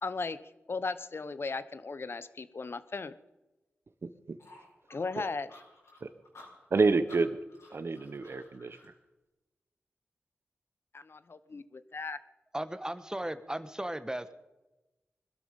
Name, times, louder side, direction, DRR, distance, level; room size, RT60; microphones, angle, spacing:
voice 1, 0.0-0.4 0.7-3.1 4.9-5.5 10.9-12.2, left 4 dB, 55° left, 14 dB, 0.9 m, -36 dB
voice 2, 4.0-4.4 6.0-6.1 6.7-7.4 7.7-8.8, right 4 dB, 60° right, 11 dB, 1.0 m, -28 dB
sound 1, 4.4-8.9, left 2 dB, 75° left, 6.0 m, -55 dB
voice 3, 12.5-14.3, right 1 dB, 15° right, 11 dB, 1.4 m, -36 dB
22.0 x 12.0 x 5.4 m, 1.1 s
cardioid pair, 40°, 5 cm